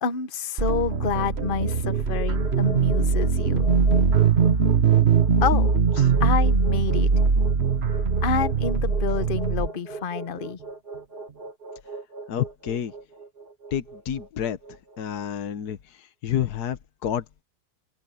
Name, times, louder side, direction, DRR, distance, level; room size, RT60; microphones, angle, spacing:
voice 1, 0.0-3.7 5.4-5.7 6.2-7.1 8.2-10.6, left 6 dB, 35° left, 1.2 m, -28 dB
sound 1, 0.6-9.7, right 5 dB, 40° right, 1.7 m, -21 dB
sound 2, 1.1-15.3, right 3 dB, 80° right, 5.8 m, -39 dB
voice 2, 12.3-12.9 13.7-14.6 15.0-17.4, left 9 dB, 75° left, 1.6 m, -29 dB
omnidirectional pair, 1.7 m